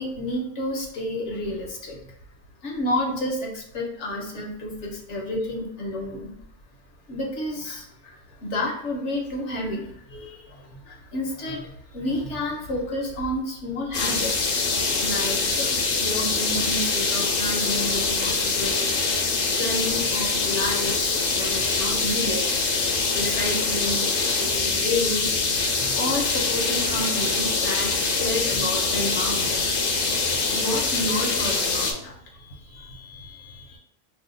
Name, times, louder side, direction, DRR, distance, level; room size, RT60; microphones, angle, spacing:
voice 1, 0.0-2.0 2.6-6.3 7.1-14.6 15.0-18.9 19.6-22.9 23.1-30.0 30.5-33.8, left 1 dB, 75° left, 0 dB, 1.1 m, -31 dB
sound 1, 13.9-31.9, left 4 dB, 60° left, 0.7 m, -24 dB
2.7 x 2.2 x 3.8 m, 0.73 s
omnidirectional pair, 1.2 m